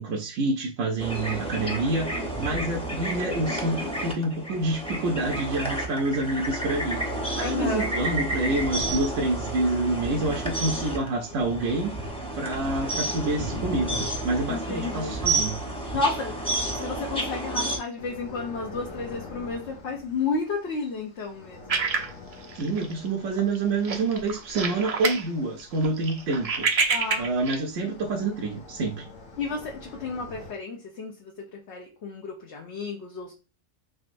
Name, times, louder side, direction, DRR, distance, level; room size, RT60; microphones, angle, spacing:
voice 1, 0.0-12.0 12.4-15.6 22.5-26.7 27.2-29.0, right 2 dB, 80° right, 1 dB, 1.0 m, -27 dB
sound 1, 1.0-17.8, right 1 dB, 5° left, 0.6 m, -31 dB
voice 2, 7.4-7.9 14.5-15.2 15.9-16.3 16.6-21.8 26.9-27.3 29.4-33.3, left 4 dB, 65° left, 0 dB, 1.0 m, -32 dB
sound 2, 18.0-30.5, left 3 dB, 85° left, 1.3 m, -46 dB
sound 3, 21.7-23.1 23.4-23.6 23.8-25.3 25.6-27.6, right 5 dB, 50° right, 0.4 m, -27 dB
3.8 x 3.4 x 2.5 m, 0.34 s
omnidirectional pair, 1.3 m